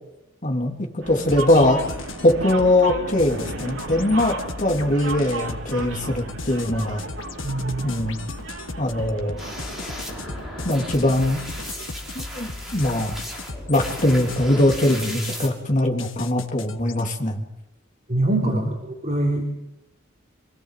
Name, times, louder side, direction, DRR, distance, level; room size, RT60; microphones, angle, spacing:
voice 1, 0.4-1.8 2.2-7.0 7.8-8.2 8.8-9.4 10.6-11.4 12.1-13.2 13.7-17.4 18.4-18.6, left 1 dB, 40° left, 1 dB, 3.4 m, -21 dB
sound 1, 1.0-11.7, right 2 dB, 75° right, 3.8 m, -35 dB
sound 2, 1.1-17.0, left 3 dB, 80° left, 1.8 m, -36 dB
voice 2, 7.4-7.9 18.1-19.5, right 2 dB, 35° right, 0 dB, 3.7 m, -24 dB
sound 3, 9.4-15.5, equal, ahead, 6.3 m, -36 dB
27.5 x 17.0 x 7.7 m, 0.95 s
head